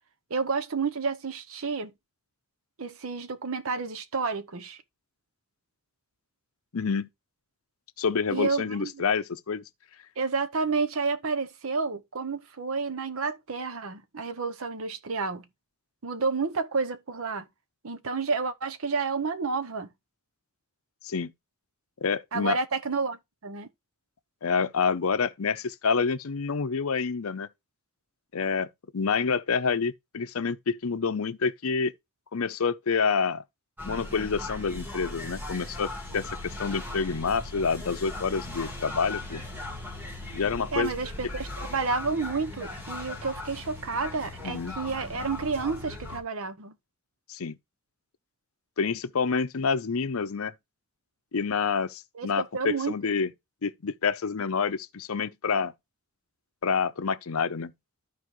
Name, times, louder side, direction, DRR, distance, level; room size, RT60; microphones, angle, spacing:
voice 1, 0.3-1.9 2.8-4.8 8.3-9.0 10.2-15.5 16.0-17.5 17.8-19.9 22.3-23.7 40.7-46.8 52.1-53.1, right 4 dB, 70° right, 0.8 m, -30 dB
voice 2, 6.7-7.1 8.0-9.6 21.0-21.3 22.0-22.6 24.4-27.5 28.3-28.7 28.9-31.9 32.3-33.4 33.8-39.4 40.3-40.9 44.4-44.8 47.3-47.6 48.8-50.5 51.3-53.3 53.6-55.7 56.6-57.7, left 5 dB, 75° left, 0.6 m, -28 dB
sound 1, 33.8-46.2, left 2 dB, 10° right, 1.7 m, -38 dB
13.0 x 4.5 x 3.1 m
head